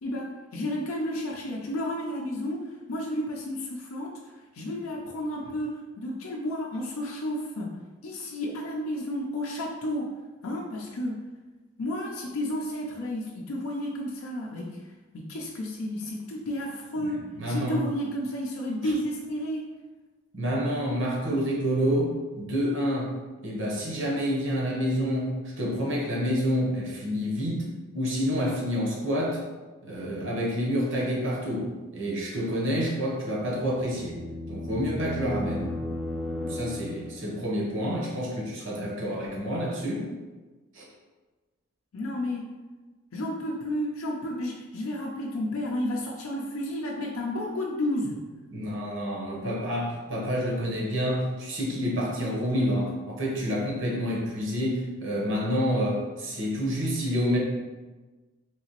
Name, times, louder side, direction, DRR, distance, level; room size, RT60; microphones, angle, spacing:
voice 1, 0.0-2.6 2.9-4.2 4.5-7.7 8.0-10.1 10.4-11.2 11.8-14.8 15.1-19.7 41.9-42.5 43.1-48.2, left 1 dB, 85° left, -1 dB, 0.5 m, -32 dB
voice 2, 17.0-17.8 18.8-18.9 20.3-23.1 23.4-27.7 27.9-29.4 29.8-34.2 34.5-35.8 36.4-40.1 40.7-40.9 48.5-57.4, equal, 65° right, -3 dB, 0.9 m, -28 dB
sound 1, 33.3-37.3, left 1 dB, 5° right, 0.4 m, -35 dB
3.3 x 2.8 x 2.9 m, 1.3 s
head